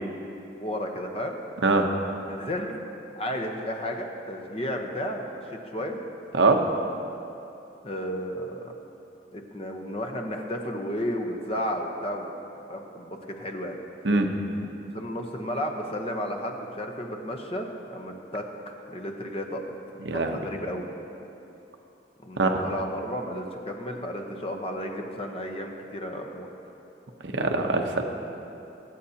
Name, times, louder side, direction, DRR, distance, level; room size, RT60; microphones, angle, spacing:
voice 1, 0.6-1.4 2.3-2.8 3.2-6.0 7.8-8.7 9.3-12.3 12.7-13.7 14.9-18.4 18.9-19.6 20.1-20.9 22.2-26.5, equal, 30° left, 3 dB, 0.9 m, -33 dB
voice 2, 20.1-20.4 22.4-22.6 27.3-28.0, right 3 dB, 85° right, 4 dB, 0.9 m, -22 dB
23.5 x 8.3 x 2.9 m, 2.9 s
head